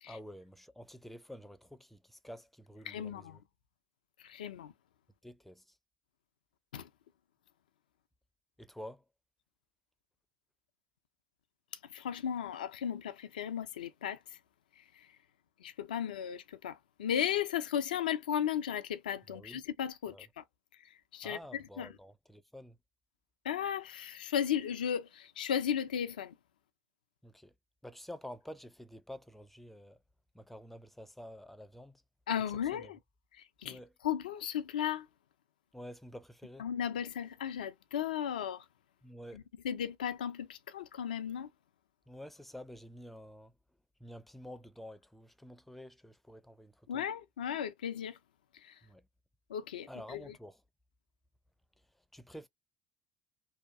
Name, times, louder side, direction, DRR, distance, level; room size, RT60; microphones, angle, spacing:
voice 1, 0.1-3.4 5.2-5.6 8.6-9.0 19.3-19.6 20.1-20.2 21.2-22.8 27.2-27.5 27.8-30.0 30.3-32.0 32.7-32.9 33.6-33.9 35.7-36.7 39.0-39.4 42.1-43.5 44.0-47.0 48.8-49.0 49.9-50.6 52.1-52.5, equal, 5° left, 0.4 m, -49 dB
voice 2, 2.9-3.4 4.2-4.7 6.7-6.9 11.9-14.2 14.8-15.1 15.6-20.4 21.1-21.4 21.8-21.9 23.4-26.3 32.3-33.0 33.4-35.1 36.6-38.6 39.3-41.5 46.9-48.2 48.6-48.8 49.5-50.4, left 9 dB, 80° left, 0.4 m, -35 dB
2.7 x 2.2 x 2.4 m
figure-of-eight pair, 65°, 5 cm